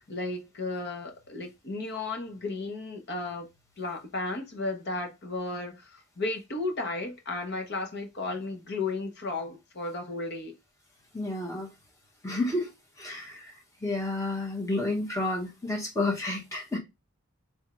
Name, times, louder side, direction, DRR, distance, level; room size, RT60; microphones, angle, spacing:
voice 1, 0.0-3.5 3.8-10.6, left 2 dB, 50° left, 1.0 m, -34 dB
voice 2, 11.1-11.7 12.2-12.7 13.0-13.5 13.8-16.8, left 2 dB, 15° left, 1.3 m, -30 dB
3.5 x 3.5 x 3.1 m
head